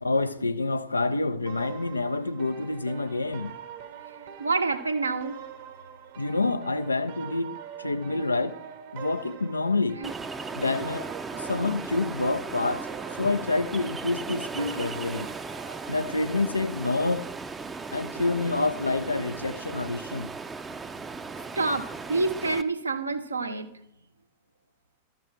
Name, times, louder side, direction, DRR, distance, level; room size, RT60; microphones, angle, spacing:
voice 1, 0.0-3.5 6.2-8.6 8.9-10.0 10.5-11.1 11.4-12.9 13.2-15.3 15.9-17.3 17.9-20.3, left 3 dB, 80° left, 0.4 m, -27 dB
sound 1, 1.5-16.5, right 8 dB, 55° right, 0.9 m, -44 dB
voice 2, 4.4-5.4 10.0-10.1 21.6-23.7, right 3 dB, 80° right, 0.7 m, -27 dB
Ocean, 10.0-22.6, right 4 dB, 15° right, 0.5 m, -37 dB
12.5 x 6.0 x 4.5 m
figure-of-eight pair, 90°, 0 cm